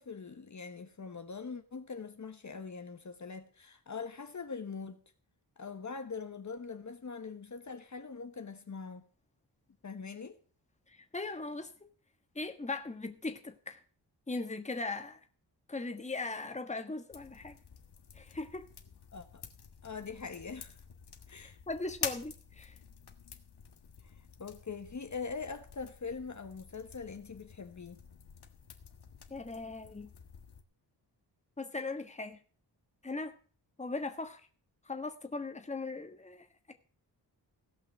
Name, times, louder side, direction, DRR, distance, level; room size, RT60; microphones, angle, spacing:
voice 1, 0.0-5.0 5.6-9.0 9.8-10.4 19.1-19.4 19.8-20.8 21.3-21.6 24.4-28.0, left 5 dB, 45° left, 1.2 m, -42 dB
voice 2, 11.1-11.7 12.3-13.8 14.3-15.2 15.7-17.6 18.2-18.6 21.7-22.7 29.3-30.1 31.6-32.4 33.0-33.3 33.8-34.4 34.9-36.7, left 3 dB, 15° left, 1.5 m, -39 dB
sound 1, 17.1-30.6, left 7 dB, 70° left, 1.6 m, -48 dB
17.0 x 5.8 x 7.2 m
wide cardioid pair, 100°, 41 cm